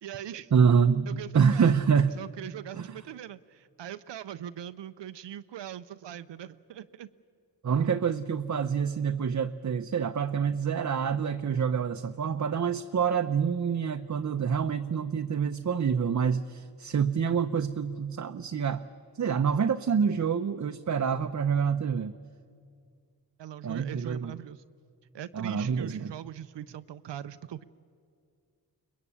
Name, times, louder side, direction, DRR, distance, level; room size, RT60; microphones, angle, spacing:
voice 1, 0.0-0.5 1.1-1.9 2.2-7.1 23.4-24.6 25.1-27.6, right 11 dB, 75° right, 13 dB, 0.6 m, -41 dB
voice 2, 0.5-2.1 2.7-2.9 7.6-18.9 19.1-22.1 23.6-24.3 25.3-26.1, right 6 dB, 40° right, 7 dB, 0.7 m, -27 dB
22.5 x 20.5 x 8.6 m, 2.2 s
cardioid pair, 45°, 43 cm